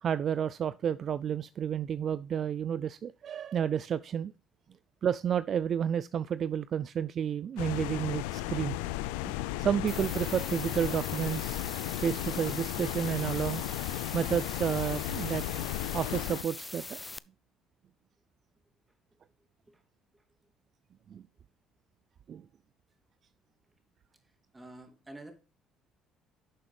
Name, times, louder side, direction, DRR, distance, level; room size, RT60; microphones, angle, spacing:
voice 1, 0.0-4.3 5.0-8.8 9.2-11.6 12.0-13.6 14.1-15.4 15.9-17.0 21.1-21.2 22.3-22.4, right 8 dB, 55° right, 0.4 m, -31 dB
sound 1, 7.6-16.4, left 15 dB, 85° left, 0.4 m, -35 dB
sound 2, 9.9-17.2, left 2 dB, 15° left, 0.5 m, -42 dB
voice 2, 24.2-25.3, right 2 dB, 20° right, 2.8 m, -49 dB
11.5 x 6.9 x 3.4 m
hypercardioid pair, 60°, 0 cm